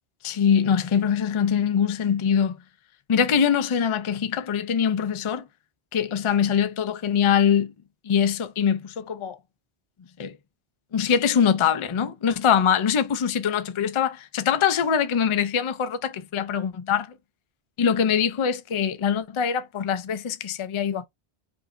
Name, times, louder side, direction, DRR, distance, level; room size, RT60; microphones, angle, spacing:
voice 1, 0.2-2.6 3.1-5.4 5.9-7.7 8.0-9.4 10.2-10.3 10.9-17.1 17.8-21.0, left 7 dB, 45° left, 0.4 m, -23 dB
4.8 x 2.7 x 2.5 m
omnidirectional pair, 1.1 m